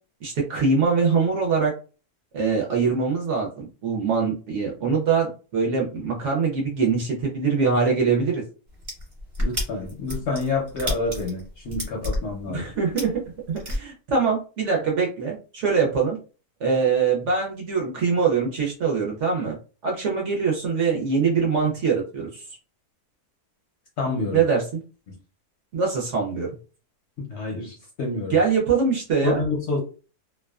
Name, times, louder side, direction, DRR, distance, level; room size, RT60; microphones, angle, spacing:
voice 1, 0.2-1.7 2.3-8.4 12.5-13.2 13.5-16.2 16.6-19.6 19.8-22.4 24.3-24.6 25.7-26.5 28.3-29.4, right 5 dB, 60° right, -1 dB, 0.8 m, -23 dB
sound 1, 8.7-13.8, left 1 dB, 35° right, 1.0 m, -29 dB
voice 2, 9.4-12.7 24.0-24.4 25.1-25.2 27.2-28.4 29.2-29.8, left 3 dB, 60° left, 0 dB, 0.7 m, -28 dB
2.6 x 2.2 x 2.3 m, 0.35 s
omnidirectional pair, 1.7 m